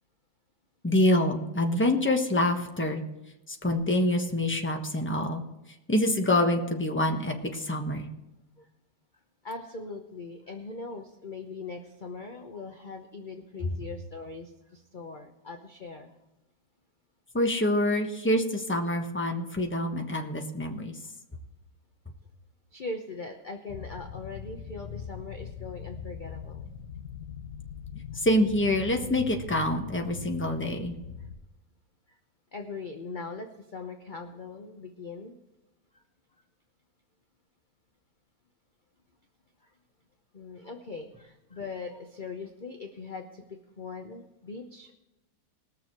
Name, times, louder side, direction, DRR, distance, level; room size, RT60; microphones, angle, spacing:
voice 1, 0.8-3.0 3.5-5.4 5.9-8.1 17.3-21.0 28.1-31.0, left 1 dB, 10° left, 3 dB, 1.0 m, -26 dB
voice 2, 9.4-16.1 22.7-26.8 31.2-31.3 32.1-32.2 32.5-35.3 35.9-36.0 39.6-39.7 40.3-43.4 43.8-44.9, left 3 dB, 40° left, 4 dB, 0.7 m, -41 dB
sound 1, 23.7-31.4, left 7 dB, 60° left, 1.0 m, -41 dB
20.5 x 7.0 x 4.6 m, 0.99 s
omnidirectional pair, 2.0 m